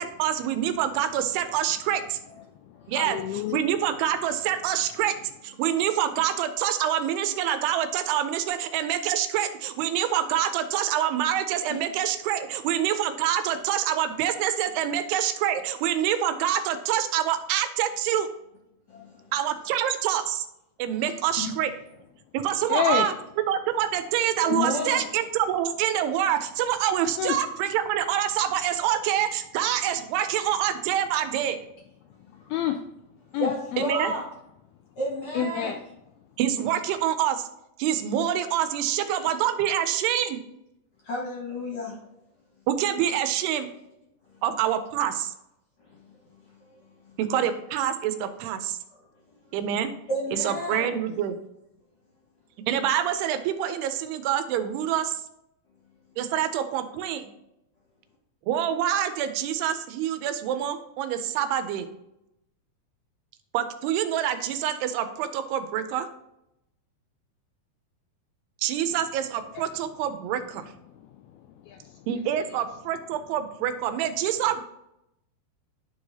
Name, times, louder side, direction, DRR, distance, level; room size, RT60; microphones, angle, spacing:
voice 1, 0.0-2.2 2.9-3.2 3.5-5.2 5.4-18.3 19.3-20.5 20.8-21.7 22.3-23.1 23.5-31.6 33.8-34.1 36.4-37.5 37.8-40.4 42.7-43.7 44.4-45.3 47.2-48.8 49.5-49.9 50.3-51.4 52.7-55.2 56.2-57.3 58.5-61.9 63.5-66.1 68.6-70.6 72.1-74.6, right 10 dB, 85° right, 9 dB, 2.6 m, -26 dB
voice 2, 2.8-3.6 22.7-23.1 27.2-27.4 32.5-32.8 33.3-33.8 35.3-35.8 69.5-69.7 71.0-71.1 71.6-72.1, left 8 dB, 85° left, 5 dB, 2.1 m, -28 dB
voice 3, 18.9-19.2 21.4-21.5 24.4-25.0 33.3-34.2 35.0-35.7 41.0-41.9 50.1-51.0, left 1 dB, 45° left, -3 dB, 1.9 m, -31 dB
12.0 x 4.8 x 2.8 m, 0.85 s
omnidirectional pair, 4.7 m